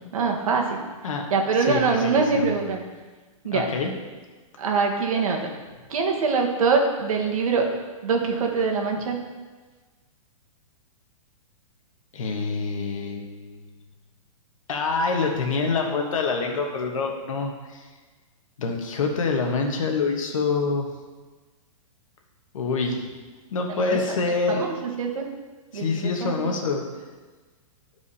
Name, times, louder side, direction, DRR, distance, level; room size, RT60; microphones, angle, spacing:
voice 1, 0.1-0.8 1.3-2.8 3.4-3.7 4.6-5.5 5.9-7.7 8.0-9.2 23.7-24.0 24.5-25.3 25.7-26.5, right 4 dB, 75° right, 2 dB, 1.4 m, -24 dB
voice 2, 1.7-2.5 3.5-3.9 12.1-13.6 14.7-17.8 18.6-20.9 22.5-23.1 23.5-24.7 25.7-26.8, left 4 dB, 70° left, 2 dB, 1.4 m, -26 dB
10.5 x 4.8 x 4.2 m, 1.3 s
hypercardioid pair, 170°, 18 cm